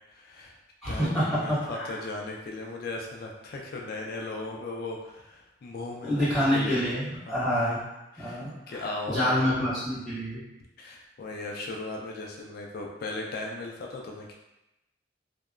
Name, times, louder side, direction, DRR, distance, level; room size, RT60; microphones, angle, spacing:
voice 1, 0.1-0.6 0.9-6.8 7.1-7.6 8.1-9.5 10.8-14.3, left 2 dB, 55° left, 0 dB, 0.3 m, -37 dB
voice 2, 0.8-1.9 6.0-7.8 8.2-10.4, equal, ahead, -14 dB, 1.5 m, -27 dB
2.8 x 2.1 x 2.4 m, 0.94 s
head